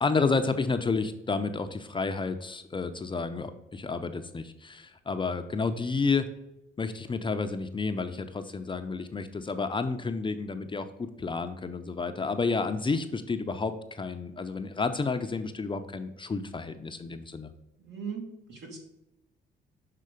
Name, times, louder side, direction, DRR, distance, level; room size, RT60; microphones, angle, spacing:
voice 1, 0.0-6.3 6.8-17.5, left 4 dB, 25° left, 8 dB, 0.5 m, -30 dB
voice 2, 17.8-18.8, right 6 dB, 65° right, 0 dB, 2.1 m, -39 dB
6.6 x 3.7 x 5.0 m, 0.91 s
cardioid pair, 90°, 20 cm